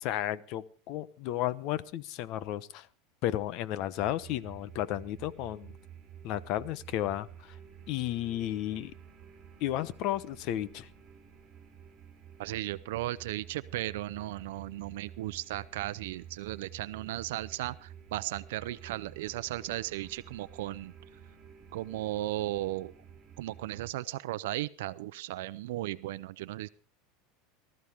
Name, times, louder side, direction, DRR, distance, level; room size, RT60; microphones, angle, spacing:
voice 1, 0.0-2.9 3.2-5.7 6.2-7.5 7.9-8.9 9.6-10.9, left 13 dB, 50° left, 16 dB, 0.9 m, -33 dB
sound 1, 3.9-23.9, right 8 dB, 25° right, 3.4 m, -51 dB
voice 2, 12.4-20.9 21.7-22.9 23.4-26.7, right 16 dB, 80° right, 15 dB, 0.6 m, -36 dB
19.0 x 13.5 x 3.6 m, 0.37 s
supercardioid pair, 155°, 0 cm